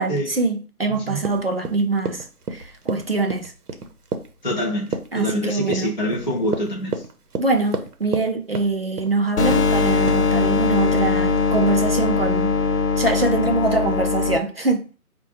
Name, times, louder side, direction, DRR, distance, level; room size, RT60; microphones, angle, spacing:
voice 1, 0.0-3.5 5.1-5.9 7.4-12.5 13.0-15.0, right 3 dB, 45° right, 0.5 m, -23 dB
voice 2, 0.9-1.2 4.4-7.0, equal, 30° left, 0.5 m, -25 dB
Run, 1.2-8.3 8.5-9.2 9.5-9.7 10.1-10.2, right 4 dB, 80° right, 0.8 m, -30 dB
sound 1, 9.4-14.4, left 4 dB, 85° left, 0.7 m, -20 dB
4.4 x 2.2 x 2.8 m
figure-of-eight pair, 160°, 45 cm